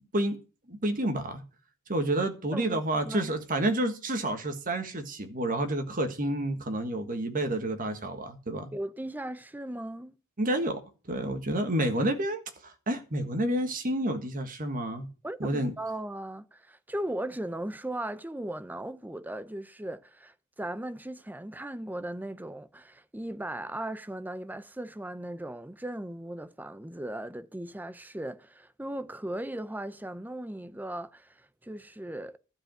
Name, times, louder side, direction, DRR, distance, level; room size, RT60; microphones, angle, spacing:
voice 1, 0.7-1.4 1.9-8.7 10.4-10.8 11.1-15.1 15.4-15.7, right 1 dB, 40° right, 1.6 m, -29 dB
voice 2, 2.5-3.3 8.7-10.1 15.2-32.4, right 1 dB, 10° right, 0.6 m, -37 dB
12.5 x 5.2 x 8.8 m
head